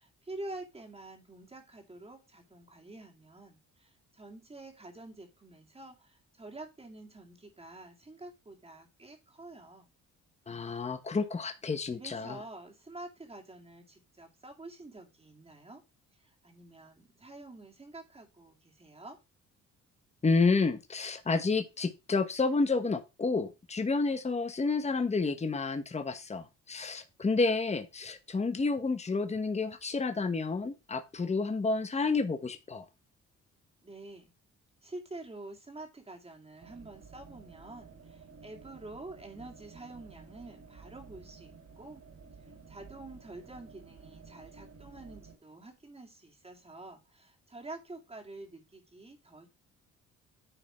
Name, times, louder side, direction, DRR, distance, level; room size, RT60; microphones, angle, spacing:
voice 1, 0.0-9.9 11.8-15.8 16.2-19.2 33.8-34.3 34.8-42.0 42.7-49.5, right 2 dB, 20° right, 2.4 m, -48 dB
voice 2, 10.5-12.4 20.2-32.8, left 4 dB, 20° left, 1.1 m, -30 dB
sound 1, 36.6-45.4, right 4 dB, 60° right, 3.6 m, -53 dB
10.0 x 3.9 x 4.3 m
cardioid pair, 90°, 30 cm